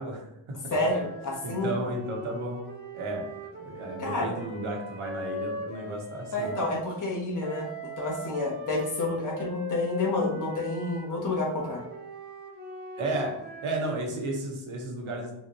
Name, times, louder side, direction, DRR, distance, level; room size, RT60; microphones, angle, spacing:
voice 1, 0.0-0.6 1.4-2.6 2.9-6.5 13.0-13.4 13.6-15.3, right 2 dB, 70° right, 1 dB, 1.2 m, -33 dB
voice 2, 0.7-1.7 4.0-4.3 6.3-11.8, left 2 dB, 40° left, -4 dB, 1.3 m, -29 dB
sound 1, 0.8-6.8 7.4-14.1, equal, 20° right, 1.0 m, -40 dB
5.7 x 2.5 x 2.9 m, 0.85 s
cardioid pair, 85°, 50 cm